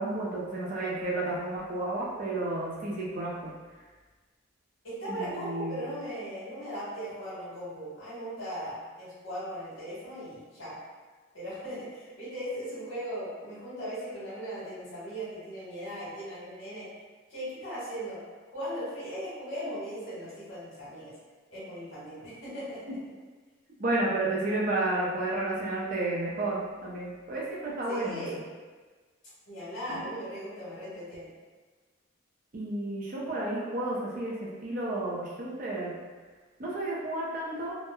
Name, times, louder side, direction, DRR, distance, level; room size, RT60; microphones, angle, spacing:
voice 1, 0.0-3.5 5.1-5.8 23.8-28.3 29.9-30.1 32.5-36.0 36.6-37.8, right 2 dB, 45° right, -4 dB, 0.5 m, -31 dB
voice 2, 4.8-10.8 11.3-16.9 17.3-18.2 18.5-21.1 21.5-22.8 27.9-28.5 29.5-31.3, equal, 90° left, -9 dB, 1.3 m, -38 dB
2.9 x 2.1 x 2.2 m, 1.4 s
head